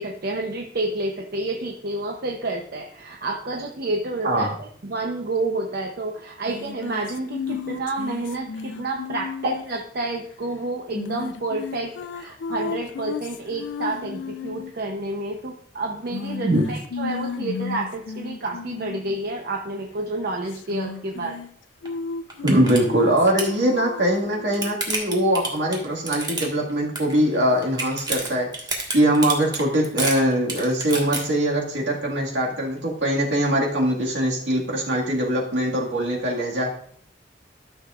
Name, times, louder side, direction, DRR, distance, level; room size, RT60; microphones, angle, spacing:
voice 1, 0.0-21.4, right 2 dB, 60° right, 1 dB, 0.7 m, -29 dB
sound 1, 6.5-9.8 10.9-14.7 16.1-19.2 20.5-21.5 21.8-24.7, left 5 dB, 80° left, 0.4 m, -34 dB
sound 2, 21.9-22.0 22.3-22.8 23.1-23.5 24.2-26.7 27.0-27.4 27.6-31.2, right 2 dB, 25° right, 1.5 m, -28 dB
voice 2, 22.4-28.5 28.9-36.7, right 1 dB, 75° right, -2 dB, 1.9 m, -22 dB
13.0 x 6.5 x 2.4 m, 0.63 s
head